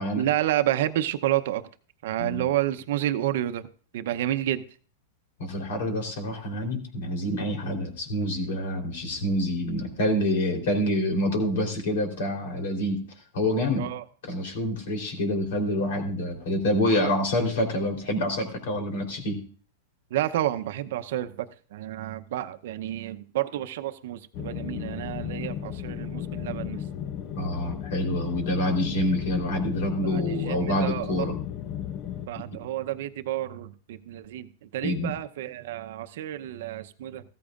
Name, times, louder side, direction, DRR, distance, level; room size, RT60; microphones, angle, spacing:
voice 1, 0.2-1.7 2.0-3.7 3.9-4.6 13.8-14.0 20.1-26.8 30.0-31.1 32.3-37.2, right 13 dB, 70° right, 10 dB, 0.7 m, -30 dB
voice 2, 5.4-13.0 13.3-13.9 14.3-19.4 27.4-31.4 34.8-35.1, left 1 dB, 70° left, 3 dB, 3.6 m, -27 dB
sound 1, 24.3-32.3, left 10 dB, 40° left, 0.8 m, -34 dB
15.5 x 14.0 x 2.5 m, 0.42 s
hypercardioid pair, 125°, 0 cm